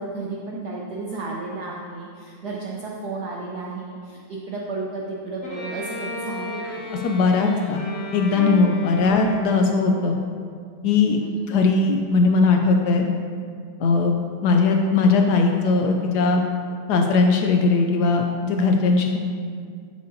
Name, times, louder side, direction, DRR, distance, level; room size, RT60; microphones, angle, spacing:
voice 1, 0.0-6.9 9.1-9.2 11.2-11.4, right 3 dB, 60° right, -3 dB, 1.1 m, -33 dB
Bowed string instrument, 5.4-9.8, equal, 45° left, 2.2 m, -34 dB
voice 2, 7.0-7.8 8.1-10.2 10.8-11.2 11.5-13.1 13.8-16.4 16.9-19.2, left 4 dB, 90° left, 3 dB, 0.8 m, -19 dB
12.5 x 6.6 x 2.7 m, 2.2 s
omnidirectional pair, 2.4 m